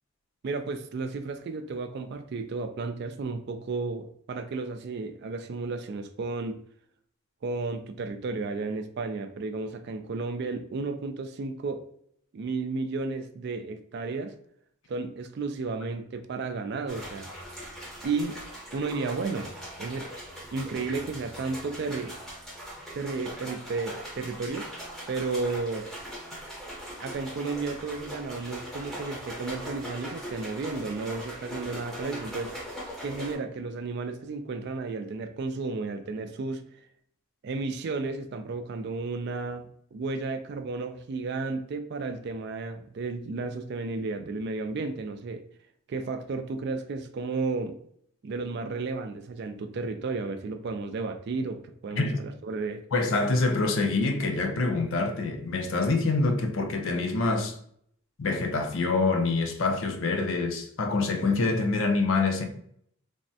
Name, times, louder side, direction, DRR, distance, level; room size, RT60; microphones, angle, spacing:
voice 1, 0.4-6.6 7.4-11.8 12.3-14.4 14.9-17.3 18.0-18.4 18.7-19.5 19.8-20.2 20.5-22.1 22.9-24.7 25.1-25.9 27.0-32.6 33.0-36.6 37.4-45.4 45.9-47.8 48.2-52.8, right 3 dB, 50° right, 0.3 m, -33 dB
sound 1, 16.9-33.3, equal, ahead, 0.6 m, -40 dB
voice 2, 52.9-57.6 58.2-62.4, left 3 dB, 60° left, 0.5 m, -26 dB
3.3 x 2.1 x 2.6 m
head